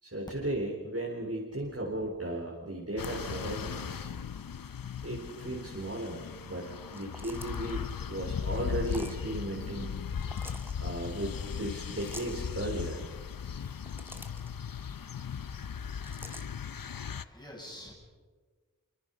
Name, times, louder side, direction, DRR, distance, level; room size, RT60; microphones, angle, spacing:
voice 1, 0.0-4.1 5.0-9.9 10.8-13.0, right 1 dB, 45° right, -3 dB, 4.1 m, -36 dB
sound 1, 3.0-17.2, left 7 dB, 90° left, 0.6 m, -38 dB
sound 2, 6.9-7.7 8.8-9.2 10.2-10.7 12.0-12.4 13.6-14.5 16.0-16.5, equal, 5° right, 2.2 m, -47 dB
voice 2, 16.5-17.9, left 1 dB, 15° left, -3 dB, 7.7 m, -49 dB
25.5 x 24.0 x 5.5 m, 1.4 s
wide cardioid pair, 40°, 33 cm